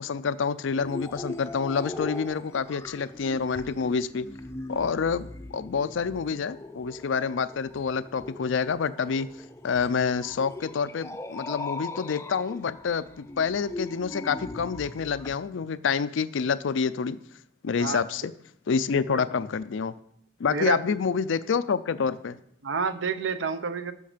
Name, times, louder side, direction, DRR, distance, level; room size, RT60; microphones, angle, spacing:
voice 1, 0.0-4.3 4.7-9.3 9.6-17.2 17.6-18.3 18.7-19.9 20.4-22.4, left 5 dB, 80° left, 14 dB, 0.4 m, -27 dB
sound 1, 0.8-15.4, left 2 dB, 15° left, 0.4 m, -40 dB
voice 2, 20.5-21.0 22.6-23.9, right 4 dB, 75° right, 11 dB, 0.8 m, -29 dB
15.0 x 6.3 x 5.0 m, 0.71 s
head